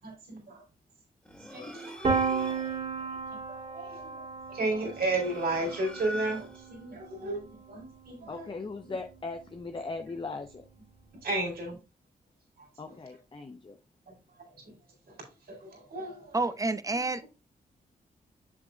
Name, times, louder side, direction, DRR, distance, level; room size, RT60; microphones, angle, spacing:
voice 1, 0.0-0.6 1.5-1.9 2.3-2.6 3.1-3.2 3.5-8.5 11.2-11.8 12.6-12.7 14.1-14.5 15.1-15.2 15.5-16.4 16.9-17.0, right 2 dB, 75° right, 3.9 m, -34 dB
sound 1, 1.2-2.8 4.7-6.8, equal, 5° left, 2.2 m, -43 dB
Piano, 2.0-7.8, right 5 dB, 50° right, 2.8 m, -34 dB
voice 2, 8.3-10.6 12.8-13.8, left 3 dB, 30° left, 0.8 m, -39 dB
voice 3, 16.3-17.3, right 3 dB, 20° right, 0.6 m, -29 dB
7.3 x 6.9 x 2.3 m
cardioid pair, 55°, 16 cm